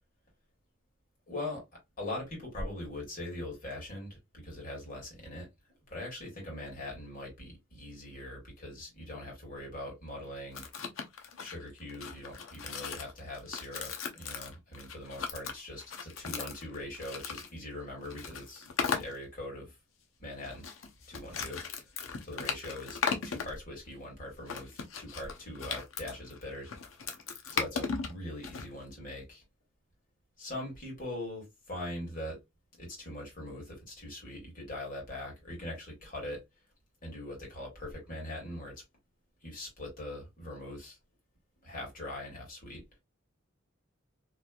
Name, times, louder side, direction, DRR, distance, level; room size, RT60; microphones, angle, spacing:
voice 1, 1.3-5.5 5.9-10.7 11.3-19.7 20.2-20.6 21.1-21.6 22.2-26.7 27.5-29.4 30.4-32.4 32.8-36.4 37.0-38.8 39.4-41.0 41.6-42.8, left 1 dB, 45° left, 1.8 m, -42 dB
sound 1, 10.5-17.5 18.0-19.2 20.4-23.5 24.5-28.7, left 5 dB, 85° left, 0.7 m, -37 dB
3.0 x 2.6 x 2.3 m
head